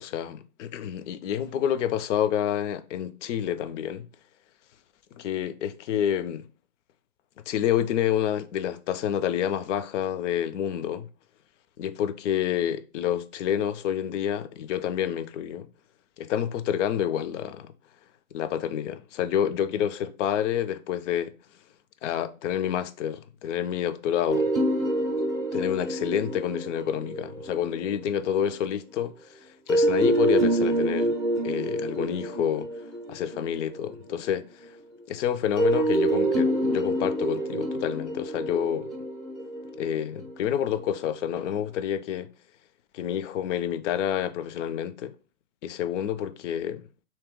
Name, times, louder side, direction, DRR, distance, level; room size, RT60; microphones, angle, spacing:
voice 1, 0.0-4.1 5.2-6.5 7.5-11.1 11.8-15.7 16.2-17.7 18.3-21.3 22.0-24.5 25.5-29.1 29.7-31.1 31.4-32.7 33.1-34.4 35.1-38.9 39.8-42.3 42.9-45.1 45.6-46.8, left 10 dB, 60° left, 0.5 m, -28 dB
sound 1, 24.3-28.1 29.7-34.2 35.6-40.8, right 1 dB, ahead, 0.4 m, -27 dB
2.9 x 2.9 x 3.6 m
hypercardioid pair, 130°, 42 cm